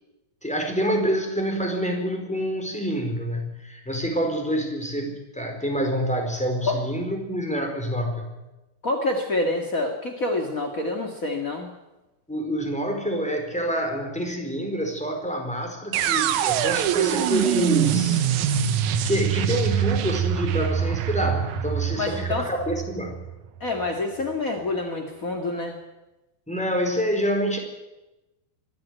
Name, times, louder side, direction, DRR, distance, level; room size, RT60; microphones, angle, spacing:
voice 1, 0.4-8.3 12.3-18.3 18.5-18.7 19.0-23.1 26.5-27.6, equal, ahead, 3 dB, 4.0 m, -27 dB
voice 2, 8.8-11.7 22.0-22.5 23.6-25.8, left 2 dB, 45° left, 3 dB, 1.1 m, -27 dB
sound 1, 15.9-23.9, right 9 dB, 90° right, 1.7 m, -24 dB
24.0 x 15.0 x 9.5 m, 1.0 s
omnidirectional pair, 5.0 m